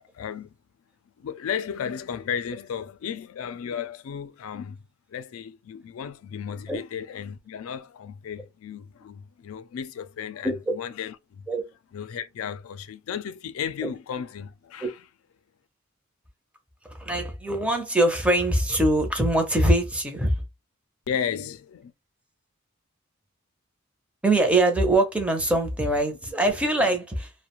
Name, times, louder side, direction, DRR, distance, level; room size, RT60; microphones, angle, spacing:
voice 1, 0.1-0.5 1.2-4.8 5.1-11.5 11.9-15.0 21.1-21.9, left 8 dB, 85° left, 0.4 m, -34 dB
voice 2, 16.8-20.4 24.2-27.3, right 1 dB, 5° right, 0.5 m, -23 dB
2.3 x 2.1 x 2.9 m
head